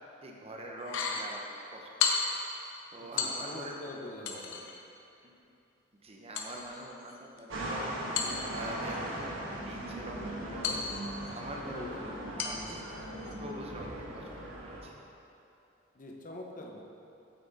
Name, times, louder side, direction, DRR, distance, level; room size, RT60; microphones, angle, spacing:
voice 1, 0.2-1.4 1.7-2.2 2.9-4.5 5.2-5.4 6.0-7.9 8.5-10.8 11.3-12.1 12.4-12.8 13.4-14.9, right 1 dB, 30° right, 0 dB, 0.8 m, -44 dB
sound 1, 0.8-1.3 2.0-2.5 3.2-3.7 4.3-4.8 6.3-7.4 8.1-9.0 10.6-11.4 12.4-12.8 13.2-13.4, left 5 dB, 75° left, 0.8 m, -34 dB
voice 2, 3.0-4.7 11.7-12.1 15.9-16.8, left 1 dB, 40° left, 0 dB, 0.8 m, -45 dB
sound 2, 7.5-14.8, right 1 dB, 80° right, 1.3 m, -39 dB
8.4 x 5.9 x 4.1 m, 2.7 s
head